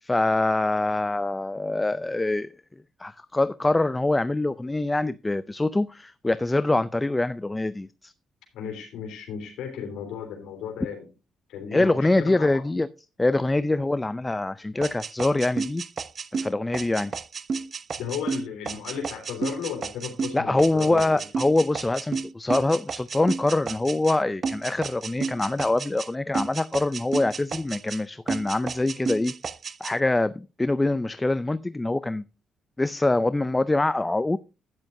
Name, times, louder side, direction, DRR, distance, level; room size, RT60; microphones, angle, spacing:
voice 1, 0.0-2.5 3.0-8.1 11.7-12.9 13.2-15.8 16.3-17.1 20.3-29.3 29.8-32.2 32.8-34.4, left 2 dB, 15° left, 0.4 m, -24 dB
voice 2, 8.5-11.0 11.5-12.7 18.0-21.2, left 7 dB, 85° left, 3.2 m, -35 dB
sound 1, 14.8-24.2 24.4-26.1 26.3-28.0 28.3-29.9, right 5 dB, 45° right, 0.6 m, -32 dB
12.0 x 9.9 x 2.6 m
cardioid pair, 90°, 0 cm